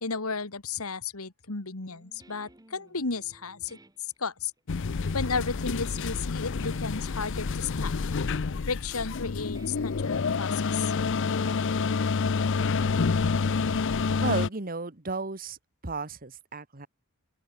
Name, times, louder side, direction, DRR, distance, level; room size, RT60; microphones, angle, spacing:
voice 1, 0.0-3.8 4.2-4.5 5.1-7.9 8.7-10.9, left 4 dB, 80° left, 2.0 m, -33 dB
Guitar, 1.8-10.5, right 1 dB, 20° right, 2.5 m, -57 dB
sound 1, 4.7-14.5, left 4 dB, 60° left, 0.6 m, -28 dB
voice 2, 14.2-15.6 15.8-16.9, right 3 dB, 40° right, 1.7 m, -33 dB
open air
head